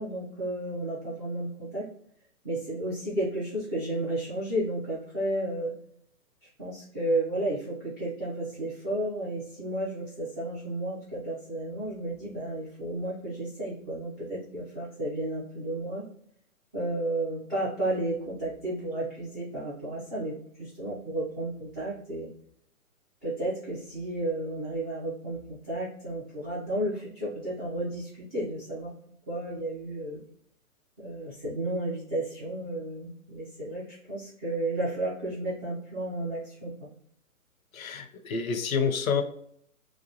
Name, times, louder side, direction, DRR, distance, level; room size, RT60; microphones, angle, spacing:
voice 1, 0.0-1.9 2.4-5.7 6.6-16.0 16.7-22.3 23.2-28.9 29.3-30.2 31.0-36.7, right 1 dB, 15° right, -11 dB, 0.5 m, -32 dB
voice 2, 37.7-39.2, left 6 dB, 65° left, 7 dB, 0.7 m, -28 dB
3.0 x 2.3 x 2.7 m, 0.67 s
figure-of-eight pair, 130°, 44 cm